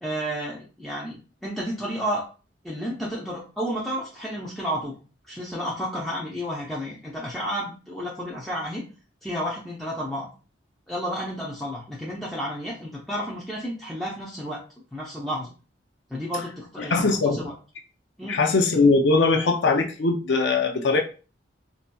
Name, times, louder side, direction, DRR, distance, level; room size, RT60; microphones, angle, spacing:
voice 1, 0.0-2.2 2.6-4.9 5.3-8.8 9.2-10.3 10.9-14.6 14.9-15.5 16.1-17.5 18.2-18.5, equal, ahead, -6 dB, 0.6 m, -31 dB
voice 2, 16.9-17.4 18.3-21.0, left 3 dB, 70° left, 3 dB, 0.5 m, -20 dB
4.2 x 2.7 x 2.2 m, 0.35 s
head